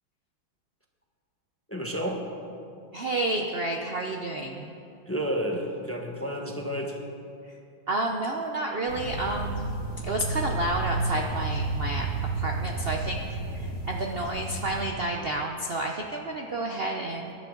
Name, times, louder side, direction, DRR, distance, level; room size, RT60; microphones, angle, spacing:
voice 1, 1.7-2.3 5.1-7.0, equal, 10° left, 1 dB, 0.9 m, -31 dB
voice 2, 2.9-4.7 7.9-9.7 10.0-12.1 12.3-17.3, right 2 dB, 65° right, 1 dB, 0.5 m, -30 dB
sound 1, 8.9-14.9, right 2 dB, 75° left, 2.6 m, -31 dB
22.0 x 11.0 x 3.9 m, 2.6 s
omnidirectional pair, 2.2 m